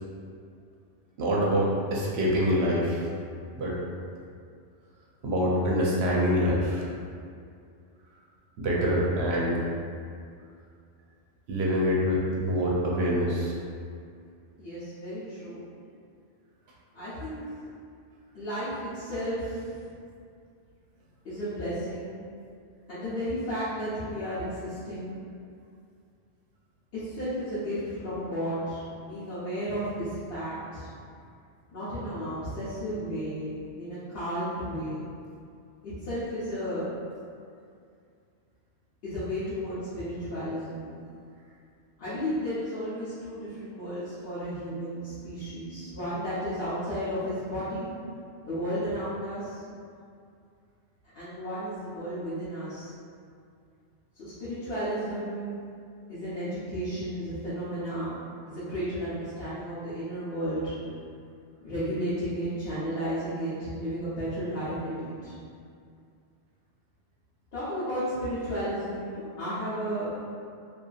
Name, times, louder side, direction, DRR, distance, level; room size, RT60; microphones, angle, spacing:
voice 1, 1.2-3.1 3.5-3.7 5.2-6.8 8.6-9.6 11.5-13.5, equal, 70° right, -4 dB, 0.8 m, -25 dB
voice 2, 14.6-15.6 16.9-17.4 18.3-19.8 21.2-22.2 22.9-25.1 26.9-30.9 31.7-35.0 35.8-36.8 39.0-40.9 42.0-47.9 48.4-49.6 51.1-52.9 54.2-55.5 56.1-58.2 58.5-60.7 61.6-65.4 67.5-70.1, equal, 60° left, -14 dB, 1.0 m, -33 dB
2.7 x 2.4 x 2.3 m, 2.3 s
omnidirectional pair, 1.2 m